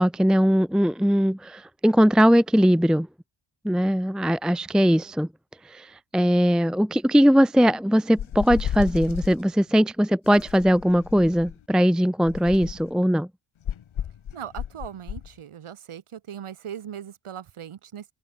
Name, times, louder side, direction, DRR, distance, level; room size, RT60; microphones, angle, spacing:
voice 1, 0.0-3.1 3.6-5.3 5.6-13.3, equal, ahead, 0.6 m, -20 dB
sound 1, 8.2-9.4 10.3-11.6 12.2-12.9 13.7-15.3, left 9 dB, 70° left, 1.8 m, -33 dB
voice 2, 14.3-18.1, right 9 dB, 80° right, 2.9 m, -39 dB
open air
wide cardioid pair, 130°, 49 cm